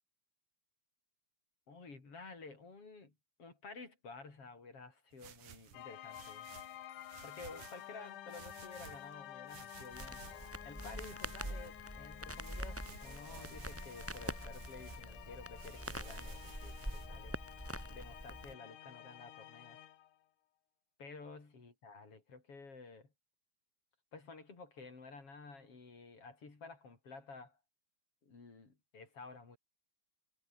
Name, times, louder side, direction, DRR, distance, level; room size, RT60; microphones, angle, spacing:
voice 1, 1.7-3.1 3.4-6.5 7.2-10.2 10.6-17.4 17.9-19.8 21.0-23.1 24.1-27.6 28.2-29.6, left 4 dB, 45° left, 5.9 m, -52 dB
sound 1, 5.1-7.9 8.3-9.1 9.5-11.8 12.1-15.0 15.6-17.1, right 9 dB, 85° right, 3.7 m, -56 dB
sound 2, 5.7-20.2, left 12 dB, 80° left, 2.9 m, -52 dB
Crackle, 9.9-18.5, equal, 5° right, 4.7 m, -45 dB
omnidirectional pair, 3.6 m